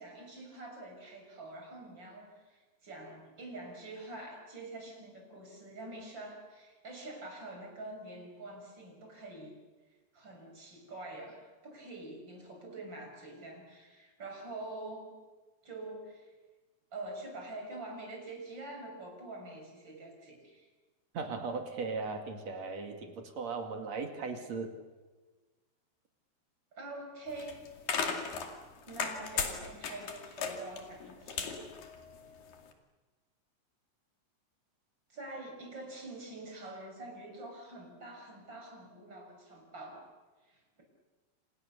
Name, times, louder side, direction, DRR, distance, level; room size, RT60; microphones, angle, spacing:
voice 1, 0.0-9.6 10.1-15.1 15.6-16.3 16.9-20.7 26.7-27.6 28.9-31.6 35.1-40.1 40.4-40.8, right 2 dB, 25° right, 2 dB, 6.7 m, -46 dB
voice 2, 21.1-24.7, right 4 dB, 45° right, 4 dB, 3.0 m, -37 dB
sound 1, 27.3-32.6, left 6 dB, 55° left, 3.7 m, -36 dB
29.0 x 27.5 x 6.8 m, 1.3 s
omnidirectional pair, 5.1 m